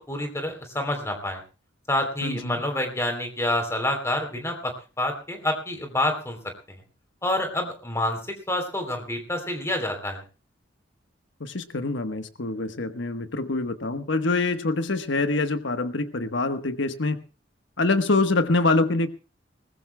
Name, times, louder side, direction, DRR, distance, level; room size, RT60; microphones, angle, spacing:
voice 1, 0.0-1.4 1.9-6.4 7.2-8.2 8.5-10.2, left 1 dB, 15° left, 5 dB, 3.4 m, -27 dB
voice 2, 2.2-2.6 11.4-17.2 17.8-19.1, left 3 dB, 75° left, 8 dB, 1.2 m, -25 dB
21.5 x 20.5 x 2.2 m, 0.34 s
head